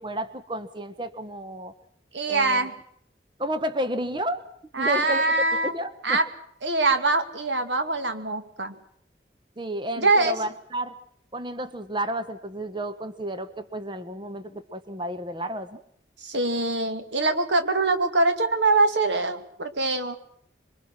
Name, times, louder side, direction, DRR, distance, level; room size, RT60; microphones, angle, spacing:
voice 1, 0.0-1.7 2.3-2.7 3.4-4.4 4.8-5.2 5.6-6.2 9.6-11.0 11.3-15.8, right 1 dB, 25° right, 12 dB, 1.2 m, -31 dB
voice 2, 2.1-2.7 4.7-5.7 6.0-6.3 6.6-8.7 10.0-10.4 16.2-20.2, right 3 dB, 80° right, 8 dB, 2.3 m, -23 dB
26.0 x 23.0 x 6.1 m, 0.67 s
head